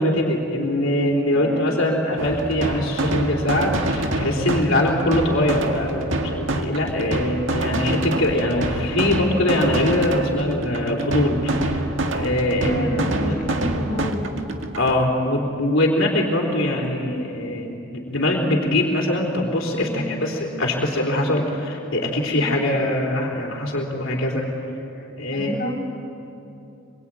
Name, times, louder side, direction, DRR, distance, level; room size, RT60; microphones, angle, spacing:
voice 1, 0.0-11.9 12.1-12.9 13.2-13.4 14.8-24.5 25.2-25.5, left 1 dB, 90° left, -1 dB, 3.8 m, -22 dB
voice 2, 1.3-1.7 12.7-14.2 19.8-20.3 22.3-22.5 24.9-25.8, equal, 40° left, -2 dB, 5.8 m, -30 dB
sound 1, 2.2-15.0, right 2 dB, 75° right, 1.8 m, -26 dB
25.5 x 22.5 x 9.2 m, 2.7 s
head